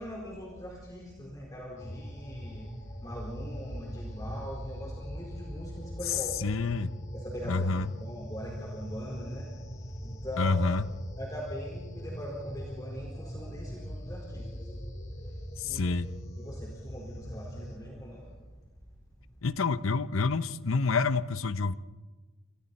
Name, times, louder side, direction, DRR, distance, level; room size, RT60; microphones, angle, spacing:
voice 1, 0.0-6.4 7.1-10.6 11.2-14.7 15.2-15.4 15.6-16.0 16.4-18.3, equal, 20° left, 4.4 m, -41 dB
sound 1, 1.8-17.8, equal, 35° left, 3.6 m, -41 dB
voice 2, 6.1-6.9 7.4-7.9 10.4-10.8 15.6-16.1 19.4-21.7, left 4 dB, 80° left, 0.8 m, -28 dB
30.0 x 28.5 x 4.3 m
head